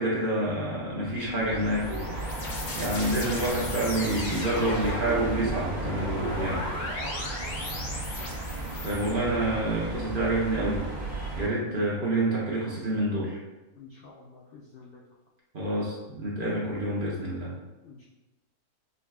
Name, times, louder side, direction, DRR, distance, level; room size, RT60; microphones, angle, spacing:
voice 1, 0.0-2.1 2.4-2.5 2.8-6.6 8.8-10.8 11.4-13.4 15.5-17.5, right 1 dB, 50° right, -5 dB, 0.7 m, -28 dB
sound 1, 1.0-11.5, right 2 dB, 80° right, 1.4 m, -35 dB
sound 2, 1.5-9.1, left 2 dB, 55° left, 0.9 m, -36 dB
voice 2, 7.0-7.3 13.8-15.0 17.8-18.1, left 3 dB, 85° left, -3 dB, 0.5 m, -48 dB
5.2 x 2.3 x 2.3 m, 1.1 s
omnidirectional pair, 1.5 m